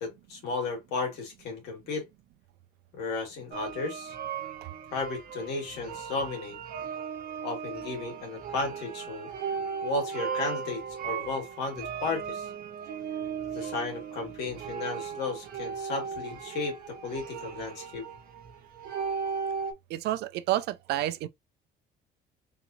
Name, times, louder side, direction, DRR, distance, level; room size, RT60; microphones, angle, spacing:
voice 1, 0.0-2.0 2.9-4.1 4.9-6.6 7.4-9.3 9.8-12.5 13.5-18.0, left 3 dB, 80° left, 2.2 m, -34 dB
sound 1, 3.5-19.7, right 6 dB, 60° right, 1.0 m, -37 dB
voice 2, 19.9-21.3, right 14 dB, 80° right, 0.5 m, -29 dB
3.9 x 2.8 x 2.7 m
cardioid pair, 110°, 17 cm